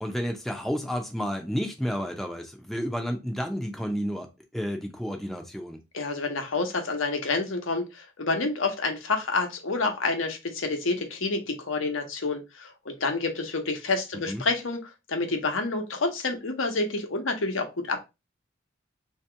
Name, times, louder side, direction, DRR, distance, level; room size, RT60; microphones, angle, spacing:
voice 1, 0.0-4.3 4.5-5.8 14.3-14.5, equal, ahead, 0.5 m, -31 dB
voice 2, 5.9-18.0, left 3 dB, 85° left, 1.0 m, -28 dB
2.9 x 2.9 x 4.4 m
head